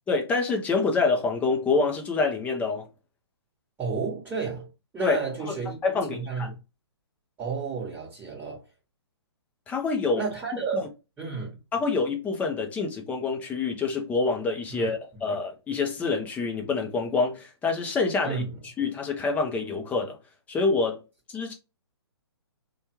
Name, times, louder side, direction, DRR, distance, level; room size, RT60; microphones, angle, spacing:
voice 1, 0.1-2.9 5.0-5.2 5.5-5.6 5.8-6.5 9.7-10.2 10.7-10.8 11.7-18.4 18.8-20.2 20.5-21.0 21.3-21.5, left 4 dB, 10° left, 0.5 m, -26 dB
voice 2, 3.8-4.7 4.9-6.6 7.4-8.6 10.1-10.9 11.2-11.6 14.8-15.2 18.2-18.6, right 5 dB, 10° right, 1.2 m, -32 dB
3.2 x 2.3 x 2.9 m
hypercardioid pair, 135°, 14 cm